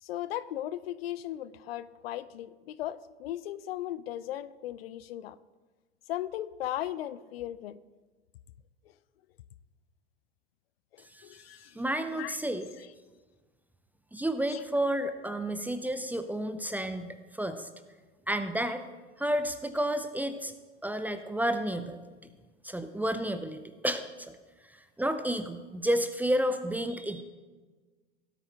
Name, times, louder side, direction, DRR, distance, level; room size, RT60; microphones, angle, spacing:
voice 1, 0.0-5.4 6.1-7.8 10.9-11.8 12.1-12.4 14.5-14.6, left 12 dB, 60° left, 16 dB, 0.6 m, -37 dB
voice 2, 11.8-12.7 14.1-17.7 18.3-18.8 19.2-20.5 20.8-22.0 22.6-24.3 25.0-27.2, right 1 dB, 5° right, 10 dB, 0.6 m, -31 dB
17.0 x 8.7 x 3.5 m, 1.3 s
figure-of-eight pair, 85°, 35 cm